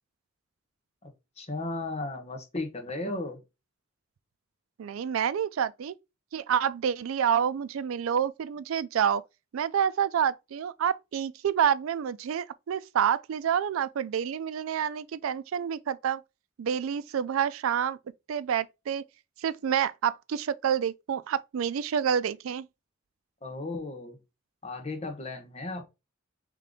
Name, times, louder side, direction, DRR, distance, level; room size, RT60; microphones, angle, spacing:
voice 1, 1.0-3.4 23.4-24.2 24.6-25.8, left 2 dB, 30° left, 1.1 m, -35 dB
voice 2, 4.8-5.9 6.3-9.2 9.5-16.2 16.6-18.0 18.3-19.0 19.4-22.7, right 8 dB, 85° right, 0.4 m, -28 dB
3.7 x 3.2 x 3.6 m
head